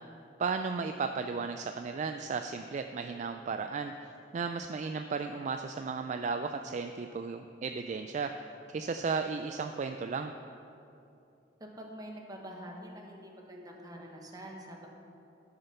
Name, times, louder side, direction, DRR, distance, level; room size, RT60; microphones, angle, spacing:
voice 1, 0.4-8.4 8.7-10.3, right 5 dB, 40° right, 7 dB, 0.3 m, -35 dB
voice 2, 11.6-14.9, equal, 20° right, 0 dB, 1.3 m, -46 dB
12.5 x 6.6 x 5.7 m, 2.8 s
head